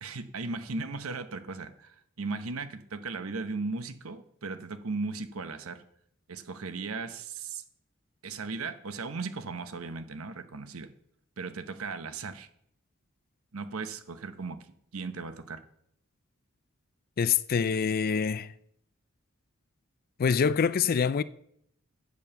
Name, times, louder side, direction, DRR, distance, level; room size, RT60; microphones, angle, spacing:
voice 1, 0.0-5.8 6.3-7.6 8.2-10.9 11.4-12.5 13.5-14.6 14.9-15.6, right 4 dB, 75° right, 0.9 m, -37 dB
voice 2, 17.2-18.5 20.2-21.2, left 6 dB, 45° left, 0.4 m, -25 dB
8.3 x 7.0 x 6.8 m
head